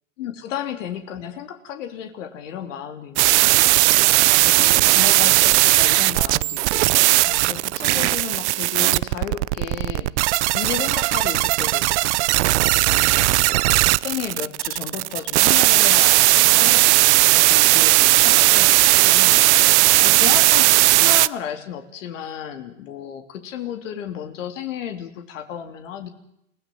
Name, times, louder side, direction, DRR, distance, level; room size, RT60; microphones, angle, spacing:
voice 1, 0.2-19.7 20.0-20.6 21.0-26.1, left 9 dB, 70° left, 6 dB, 3.1 m, -34 dB
sound 1, 3.2-21.3, right 20 dB, 55° right, 0.8 m, -17 dB
29.5 x 17.0 x 7.7 m, 0.79 s
hypercardioid pair, 125°, 40 cm